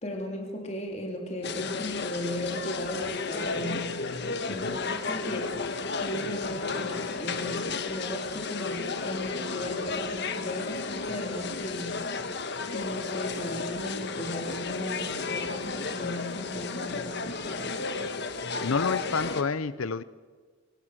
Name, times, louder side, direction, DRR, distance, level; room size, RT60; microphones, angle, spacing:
voice 1, 0.0-3.9 4.5-5.6 6.0-12.2 12.7-17.7, left 1 dB, 30° left, 1 dB, 3.0 m, -36 dB
sound 1, 1.4-19.4, left 4 dB, 50° left, 1.5 m, -33 dB
voice 2, 18.6-20.0, left 4 dB, 75° left, 17 dB, 0.7 m, -29 dB
27.0 x 24.5 x 6.4 m, 1.5 s
head